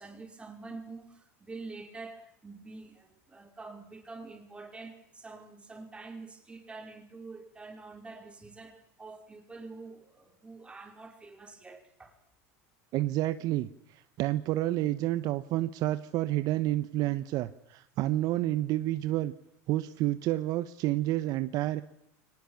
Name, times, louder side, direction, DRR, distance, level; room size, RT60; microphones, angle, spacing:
voice 1, 0.0-12.1, right 3 dB, 15° right, 4.8 m, -46 dB
voice 2, 12.9-19.3 19.7-21.8, right 15 dB, 50° right, 1.0 m, -29 dB
24.0 x 19.0 x 7.2 m
supercardioid pair, 120°, 8 cm